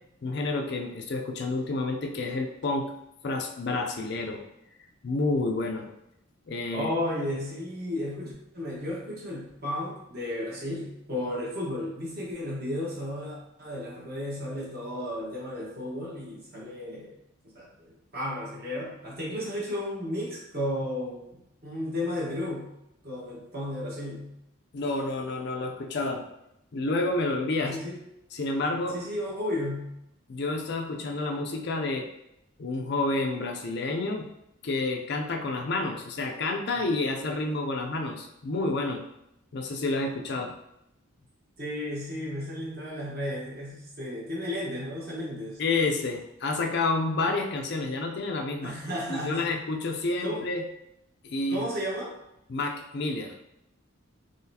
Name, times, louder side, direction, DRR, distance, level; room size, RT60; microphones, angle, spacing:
voice 1, 0.2-2.9 3.2-4.4 5.0-5.9 6.5-6.9 24.7-26.2 26.7-27.8 28.3-29.0 30.3-32.0 32.6-34.3 34.6-39.0 39.5-40.5 45.6-48.8 49.1-50.6 51.2-51.6 52.5-53.4, left 2 dB, 55° left, 3 dB, 0.4 m, -29 dB
voice 2, 6.7-17.2 17.5-21.3 21.6-22.7 23.0-24.3 27.6-28.0 28.9-29.9 41.6-45.6 48.6-49.5 50.2-50.5 51.5-52.1, left 1 dB, 45° right, -5 dB, 1.3 m, -33 dB
3.9 x 3.2 x 2.8 m, 0.83 s
head